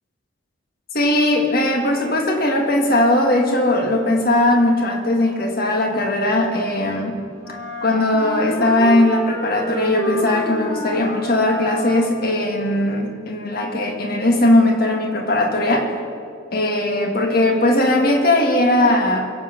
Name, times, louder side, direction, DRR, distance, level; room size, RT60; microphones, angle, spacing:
voice 1, 0.9-7.2 7.8-15.9 16.5-19.2, left 1 dB, 45° left, 1 dB, 1.8 m, -18 dB
Wind instrument woodwind instrument, 7.4-12.4, right 1 dB, 10° left, 2.6 m, -29 dB
22.0 x 8.0 x 6.0 m, 2.4 s
head